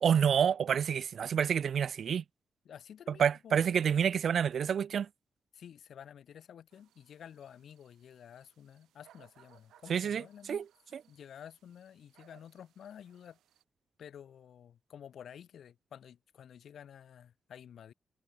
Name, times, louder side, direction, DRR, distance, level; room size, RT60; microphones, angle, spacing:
voice 1, 0.0-2.2 3.2-5.1 9.9-10.2 10.5-10.6, right 8 dB, 70° right, 0.5 m, -28 dB
voice 2, 2.6-3.9 5.5-10.7 11.1-13.4 14.0-17.9, left 9 dB, 75° left, 3.1 m, -51 dB
sound 1, 6.7-13.6, right 12 dB, 90° right, 4.4 m, -66 dB
cardioid pair, 55°, 0 cm